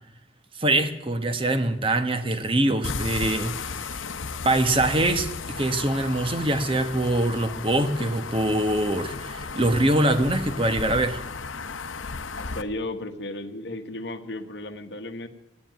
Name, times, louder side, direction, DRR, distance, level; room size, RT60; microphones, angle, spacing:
voice 1, 0.6-4.0 4.4-11.2, right 1 dB, 25° right, 9 dB, 1.1 m, -24 dB
sound 1, 2.8-12.6, left 4 dB, 85° left, 0.8 m, -35 dB
voice 2, 12.3-15.3, left 2 dB, 60° left, 6 dB, 1.2 m, -34 dB
15.5 x 10.0 x 9.3 m, 1.0 s
head